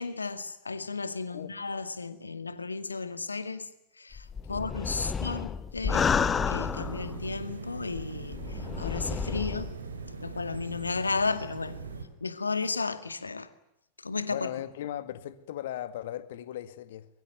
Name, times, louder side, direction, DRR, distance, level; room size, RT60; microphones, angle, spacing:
voice 1, 0.0-3.7 4.0-6.1 6.4-9.7 10.2-11.8 12.2-13.5 14.0-14.5, left 4 dB, 80° left, 2.0 m, -34 dB
sound 1, 4.1-7.3 8.0-9.7, left 6 dB, 20° left, 1.2 m, -30 dB
voice 2, 5.0-5.5 14.3-17.1, left 12 dB, 55° left, 2.0 m, -38 dB
sound 2, 5.8-12.0, right 4 dB, 75° right, 3.9 m, -40 dB
23.5 x 22.5 x 9.4 m
figure-of-eight pair, 90°, 0 cm